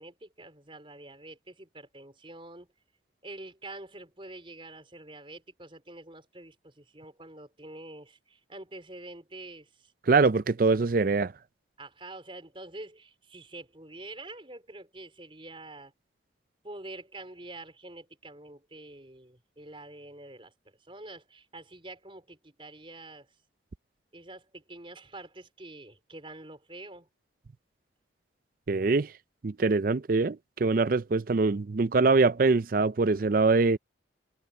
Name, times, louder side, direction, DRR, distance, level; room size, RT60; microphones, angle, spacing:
voice 1, 0.0-2.7 3.2-9.9 11.8-15.9 16.6-20.5 20.9-23.3 24.1-27.1, right 2 dB, 30° right, 4.5 m, -46 dB
voice 2, 10.1-11.3 28.7-29.1 29.4-33.8, right 3 dB, 45° right, 0.5 m, -23 dB
head